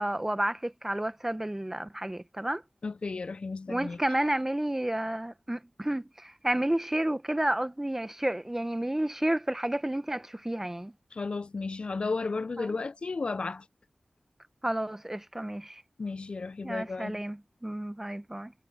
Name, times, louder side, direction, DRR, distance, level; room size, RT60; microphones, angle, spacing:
voice 1, 0.0-2.6 3.7-10.9 12.6-12.8 14.6-15.8 16.6-18.5, right 1 dB, 15° right, 0.9 m, -31 dB
voice 2, 2.8-4.0 11.1-13.7 16.0-17.2, left 4 dB, 60° left, 0.3 m, -33 dB
wide cardioid pair, 60°, 2 cm